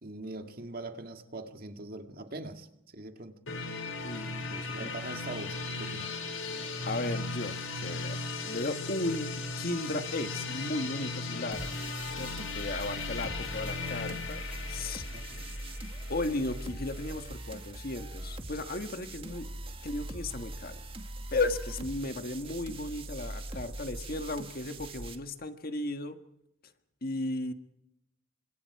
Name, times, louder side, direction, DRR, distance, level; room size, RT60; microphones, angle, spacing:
voice 1, 0.0-2.7 2.9-3.4 4.5-6.2 13.2-13.5 15.1-15.4, right 2 dB, 45° right, 6 dB, 2.1 m, -42 dB
sound 1, 3.5-17.2, left 3 dB, 80° left, 5.6 m, -37 dB
voice 2, 4.0-4.7 6.9-11.7 12.2-14.4 14.7-15.0 16.1-19.5 19.8-20.8 21.3-26.2 27.0-27.5, left 2 dB, 45° left, 8 dB, 1.6 m, -35 dB
sound 2, 11.5-25.2, right 1 dB, 25° right, 2.0 m, -41 dB
29.5 x 26.0 x 4.8 m, 0.84 s
head